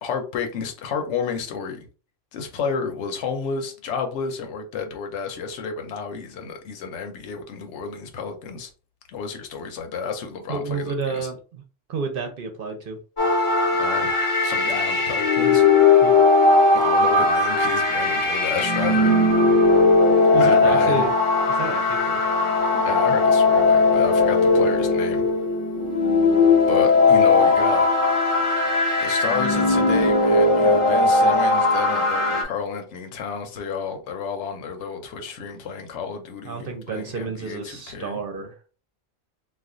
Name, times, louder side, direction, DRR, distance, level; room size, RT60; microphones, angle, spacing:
voice 1, 0.0-1.9 2.3-8.7 9.1-11.3 13.8-15.6 16.7-19.1 20.3-21.1 22.8-25.2 26.7-27.9 29.0-38.2, left 6 dB, 70° left, 1.0 m, -31 dB
voice 2, 10.5-11.6 11.9-13.0 16.0-16.2 20.3-21.1 21.5-22.2 36.4-38.5, right 4 dB, 55° right, 0.7 m, -30 dB
sound 1, 13.2-32.4, left 3 dB, 40° left, 0.4 m, -18 dB
2.4 x 2.2 x 3.7 m
omnidirectional pair, 1.3 m